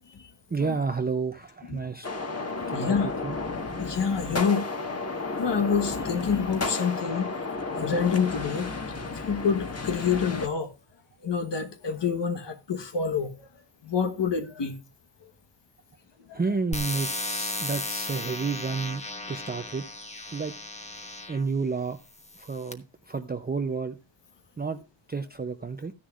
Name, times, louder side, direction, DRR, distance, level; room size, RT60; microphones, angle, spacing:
voice 1, 0.5-2.1 2.7-3.4 16.3-19.9 20.3-20.6 21.3-22.0 22.4-24.0 24.6-24.8 25.1-25.9, right 4 dB, 20° right, 0.5 m, -31 dB
sound 1, 2.0-10.5, left 3 dB, 30° left, 1.4 m, -32 dB
voice 2, 2.3-3.1 3.7-4.6 5.4-7.3 7.8-8.7 9.3-10.7 11.2-13.3 13.8-14.8 16.3-16.4, left 6 dB, 65° left, 1.2 m, -27 dB
sound 2, 16.7-21.5 22.2-22.7, left 2 dB, 15° left, 1.1 m, -35 dB
14.0 x 10.0 x 2.4 m
wide cardioid pair, 115°, 47 cm